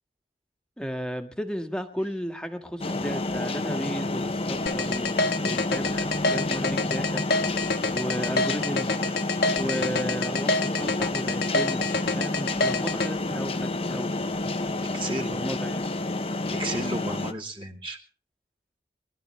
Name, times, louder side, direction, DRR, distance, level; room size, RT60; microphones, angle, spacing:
voice 1, 0.8-5.2 5.4-7.2 7.9-9.0 9.5-11.9 12.1-14.1 15.1-15.9, equal, 5° left, 6 dB, 1.7 m, -34 dB
sound 1, 2.8-17.3, left 2 dB, 35° left, 0.9 m, -29 dB
sound 2, 4.7-13.1, left 3 dB, 65° left, 1.3 m, -26 dB
voice 2, 14.9-15.5 16.5-18.0, right 1 dB, 30° right, 0 dB, 2.7 m, -33 dB
24.0 x 13.0 x 3.2 m, 0.40 s
head